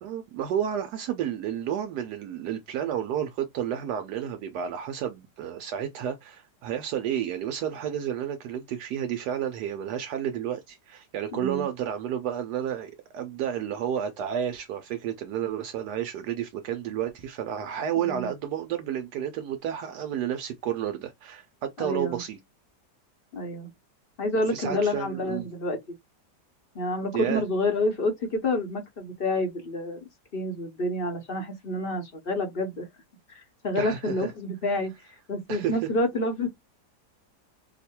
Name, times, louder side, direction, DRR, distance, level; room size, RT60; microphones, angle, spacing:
voice 1, 0.0-22.4 24.5-25.5 27.1-27.4 33.8-34.3 35.5-35.9, right 9 dB, 80° right, 1.2 m, -31 dB
voice 2, 11.3-11.7 18.0-18.3 21.8-22.2 23.3-23.7 24.2-26.0 26.7-30.0 30.3-32.9 33.3-34.9 35.3-36.5, left 1 dB, 45° left, 0.7 m, -28 dB
3.0 x 2.1 x 4.2 m
omnidirectional pair, 1.8 m